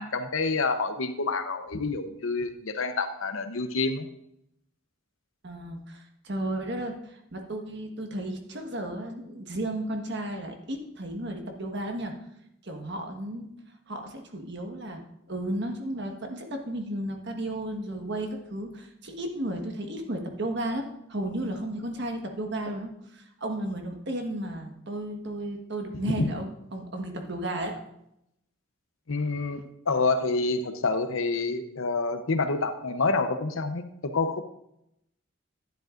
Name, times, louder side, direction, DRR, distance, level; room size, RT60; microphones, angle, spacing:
voice 1, 0.0-4.1 26.2-26.3 29.1-34.4, left 3 dB, 70° left, 9 dB, 0.8 m, -28 dB
voice 2, 5.4-12.1 12.6-13.5 13.9-15.0 15.3-27.8, right 1 dB, 55° right, 3 dB, 1.4 m, -34 dB
11.5 x 10.5 x 2.5 m, 0.80 s
head